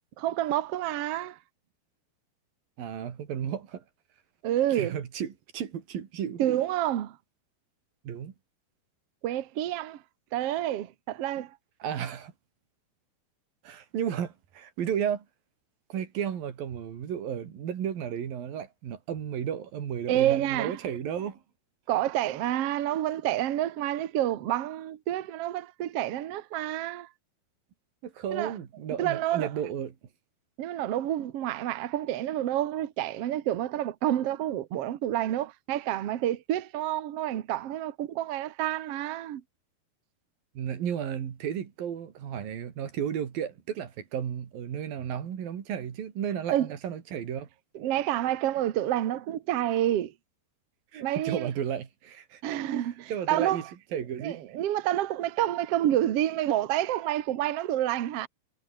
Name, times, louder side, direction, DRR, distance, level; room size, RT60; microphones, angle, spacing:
voice 1, 0.2-1.4 4.4-5.0 6.4-7.2 9.2-10.0 10.3-11.5 20.1-20.8 21.9-27.1 28.3-28.5 29.0-29.5 30.6-39.4 46.5-46.7 47.7-50.1 51.0-51.5 52.4-53.7 54.2-58.3, right 12 dB, 90° right, 1.3 m, -28 dB
voice 2, 2.8-3.8 4.7-6.4 8.0-8.3 11.8-12.3 13.6-15.3 15.9-21.4 28.0-29.9 40.6-47.5 50.9-52.4 53.1-53.6 53.9-54.4, right 9 dB, 60° right, 4.1 m, -33 dB
omnidirectional pair, 4.9 m